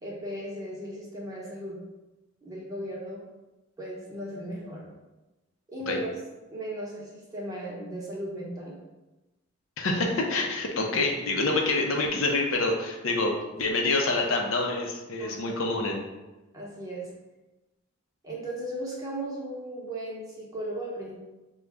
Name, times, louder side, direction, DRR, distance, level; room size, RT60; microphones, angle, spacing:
voice 1, 0.0-1.8 2.4-3.2 3.8-4.8 5.7-6.1 6.5-8.8 13.7-13.8 15.2-15.6 16.5-17.1 18.2-21.1, right 1 dB, 15° right, -4 dB, 0.9 m, -36 dB
voice 2, 9.8-16.0, left 2 dB, 80° left, 1 dB, 0.7 m, -27 dB
5.2 x 2.3 x 3.4 m, 1.1 s
head